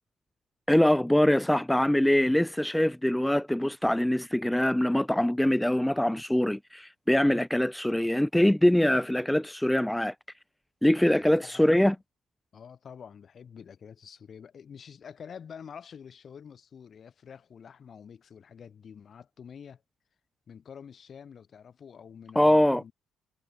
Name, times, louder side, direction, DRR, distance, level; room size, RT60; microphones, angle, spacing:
voice 1, 0.7-10.1 10.8-12.0 22.4-22.8, left 1 dB, 5° left, 0.5 m, -23 dB
voice 2, 11.2-11.7 12.5-19.8 20.5-22.9, left 7 dB, 50° left, 4.9 m, -47 dB
supercardioid pair, 65°, 0 cm